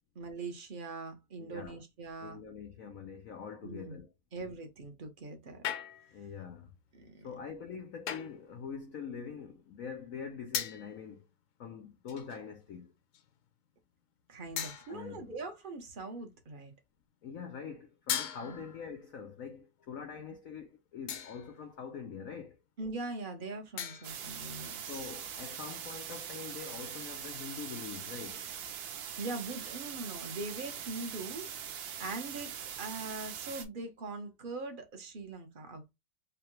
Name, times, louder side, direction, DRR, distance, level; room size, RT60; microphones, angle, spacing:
voice 1, 0.1-2.4 3.6-4.0 4.3-5.6 6.9-7.3 14.3-16.7 18.4-18.6 22.8-25.1 29.2-31.5 32.0-35.9, right 3 dB, 50° right, 0.6 m, -42 dB
voice 2, 1.4-1.8 2.2-4.1 6.1-6.7 7.2-11.3 11.6-12.9 14.9-15.3 17.2-22.6 24.9-28.5, left 6 dB, 85° left, 0.7 m, -44 dB
sound 1, 5.6-6.3 8.1-8.5 10.5-11.0 12.1-12.5 13.1-13.3 14.6-15.2 18.1-18.9 21.1-21.6 23.8-24.3, left 9 dB, 65° left, 1.0 m, -38 dB
sound 2, 24.0-33.6, right 8 dB, 75° right, 1.5 m, -42 dB
4.8 x 2.2 x 3.1 m
omnidirectional pair, 2.2 m